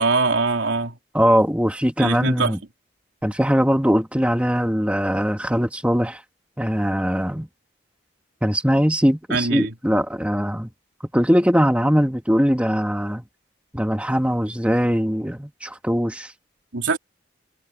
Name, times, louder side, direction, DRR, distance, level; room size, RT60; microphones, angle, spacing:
voice 1, 0.0-1.0 2.0-2.6 9.3-9.7 16.7-17.0, right 4 dB, 85° right, 3.1 m, -22 dB
voice 2, 1.1-2.6 3.2-6.2 6.6-7.5 8.4-10.7 11.1-13.2 13.7-16.3, equal, 5° right, 1.7 m, -21 dB
head